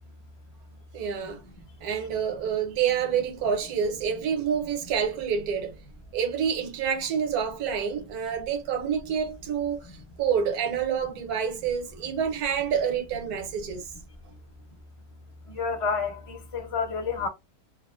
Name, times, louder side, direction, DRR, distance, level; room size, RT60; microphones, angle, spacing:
voice 1, 0.9-1.4 1.8-5.8 6.1-13.9, right 7 dB, 75° right, 1.2 m, -28 dB
voice 2, 15.5-17.3, left 5 dB, 50° left, 0.4 m, -29 dB
2.9 x 2.1 x 2.3 m
omnidirectional pair, 1.7 m